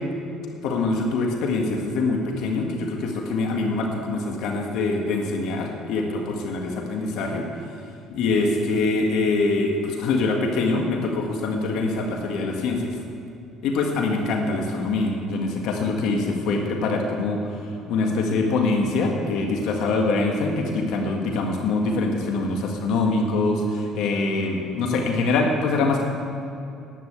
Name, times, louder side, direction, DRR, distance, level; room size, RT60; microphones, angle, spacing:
voice 1, 0.6-7.4 8.1-12.9 13.6-17.6 17.9-26.0, left 3 dB, 70° left, 1 dB, 1.8 m, -24 dB
11.0 x 9.1 x 9.5 m, 2.7 s
cardioid pair, 115°, 0 cm